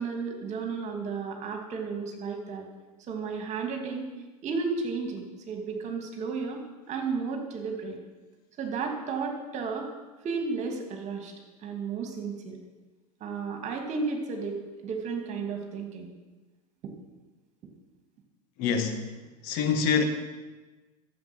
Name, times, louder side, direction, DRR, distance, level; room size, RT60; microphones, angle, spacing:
voice 1, 0.0-2.7 3.1-4.1 4.4-6.6 6.9-8.0 8.6-9.9 10.2-11.3 11.6-12.6 13.2-16.1, right 4 dB, 35° right, 4 dB, 2.5 m, -33 dB
voice 2, 18.6-19.1 19.4-20.0, left 6 dB, 50° left, 6 dB, 1.6 m, -25 dB
13.0 x 7.8 x 6.3 m, 1.2 s
hypercardioid pair, 90°, 20 cm